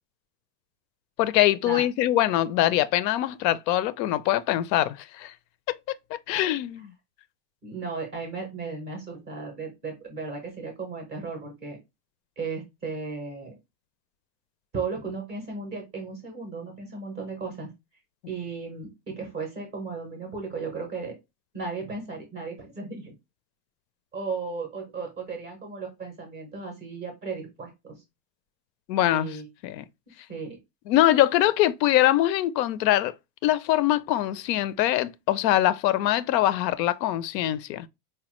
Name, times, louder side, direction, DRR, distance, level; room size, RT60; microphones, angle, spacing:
voice 1, 1.2-5.3 5.7-5.8 6.3-6.9 28.9-29.3 29.6-29.8 30.9-33.1 33.4-37.9, left 14 dB, 90° left, 0.6 m, -23 dB
voice 2, 7.6-11.8 12.4-13.6 14.7-17.7 18.3-21.1 21.5-23.1 24.1-28.0 29.0-29.5 30.3-30.6, right 4 dB, 15° right, 0.4 m, -35 dB
4.2 x 2.2 x 2.9 m
supercardioid pair, 175°, 48 cm